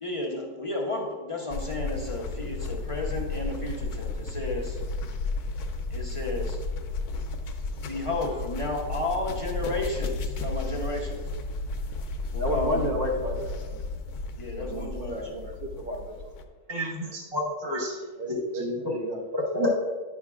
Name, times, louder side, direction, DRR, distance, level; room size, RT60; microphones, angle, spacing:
voice 1, 0.0-4.8 5.9-6.6 7.9-11.2 12.3-13.0 14.4-15.5, left 2 dB, 40° left, -1 dB, 0.5 m, -33 dB
sound 1, 1.5-16.4, left 3 dB, 75° left, 1.1 m, -33 dB
voice 2, 12.4-13.8 14.6-16.3 18.2-19.2, equal, 50° right, 0 dB, 0.7 m, -32 dB
voice 3, 16.7-18.0 18.3-18.9 19.3-19.8, left 1 dB, 20° right, -4 dB, 0.9 m, -29 dB
9.9 x 6.4 x 2.4 m, 1.4 s
omnidirectional pair, 1.7 m